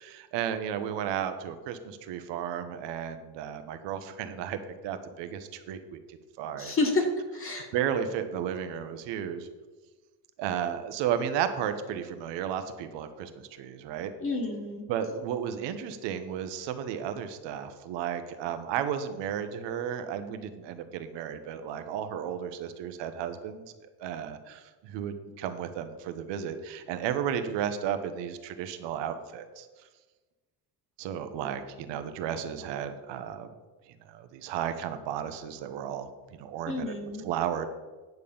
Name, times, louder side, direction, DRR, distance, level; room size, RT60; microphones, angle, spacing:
voice 1, 0.0-4.6 4.8-6.7 7.5-9.5 10.4-14.1 14.9-23.7 24.0-29.7 31.0-33.5 34.1-36.1 36.4-36.9 37.2-37.7, right 9 dB, 80° right, 9 dB, 1.1 m, -33 dB
voice 2, 6.6-7.1 7.3-7.7 14.2-14.8 36.7-37.3, left 3 dB, 30° left, 3 dB, 1.7 m, -29 dB
9.5 x 6.9 x 5.5 m, 1.3 s
cardioid pair, 135°, 42 cm